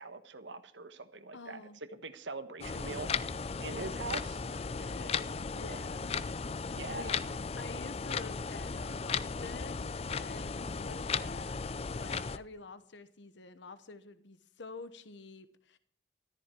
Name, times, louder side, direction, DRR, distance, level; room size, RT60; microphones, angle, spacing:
voice 1, 0.0-1.6 1.9-3.1 3.6-4.4 5.7-5.8 6.7-7.2, right 3 dB, 75° right, 11 dB, 1.3 m, -42 dB
voice 2, 1.3-1.8 3.7-6.4 6.9-7.2 7.6-15.8, left 3 dB, 75° left, 12 dB, 1.0 m, -49 dB
sound 1, 2.6-12.4, left 5 dB, 35° left, 0.5 m, -36 dB
14.5 x 13.5 x 4.5 m, 0.62 s
head